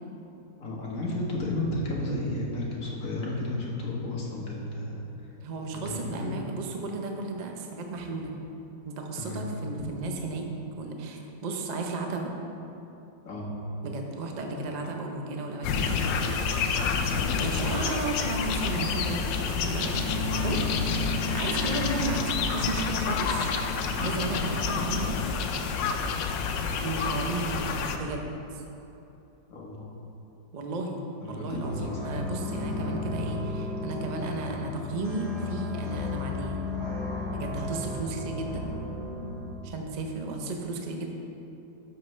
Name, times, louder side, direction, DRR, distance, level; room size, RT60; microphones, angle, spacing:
voice 1, 0.6-5.0 5.7-6.3 9.2-9.4 13.3-13.5 16.0-17.0 21.5-21.7 24.0-24.4 29.5-29.8 31.2-32.2 34.0-34.1, left 1 dB, 50° left, -4 dB, 1.7 m, -33 dB
voice 2, 5.4-8.3 8.8-10.5 10.8-12.3 13.8-16.0 17.4-19.9 20.4-20.6 21.3-23.5 24.0-25.2 26.8-28.2 28.5-28.6 30.5-36.6 37.3-38.6 39.6-41.1, right 2 dB, 60° right, 2 dB, 0.4 m, -34 dB
sound 1, 15.6-28.0, left 5 dB, 90° left, 1.3 m, -29 dB
sound 2, 19.9-26.0, equal, 80° right, 2.1 m, -36 dB
sound 3, 31.6-39.5, left 3 dB, 40° right, 2.0 m, -34 dB
11.5 x 6.9 x 3.3 m, 3.0 s
omnidirectional pair, 1.9 m